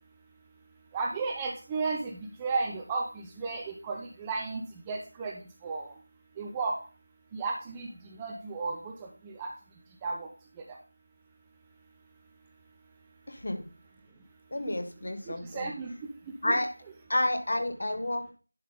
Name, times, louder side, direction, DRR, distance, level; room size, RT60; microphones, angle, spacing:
voice 1, 0.9-4.6 4.9-5.3 5.6-5.9 6.4-6.7 7.3-7.9 8.2-9.5 10.0-10.3 15.3-15.9 16.4-16.6, right 4 dB, 10° right, 1 dB, 0.3 m, -33 dB
voice 2, 13.3-13.6 14.5-15.7 16.4-16.7 17.1-18.3, left 1 dB, 45° left, 6 dB, 1.2 m, -30 dB
11.0 x 3.7 x 3.8 m, 0.35 s
figure-of-eight pair, 170°, 0 cm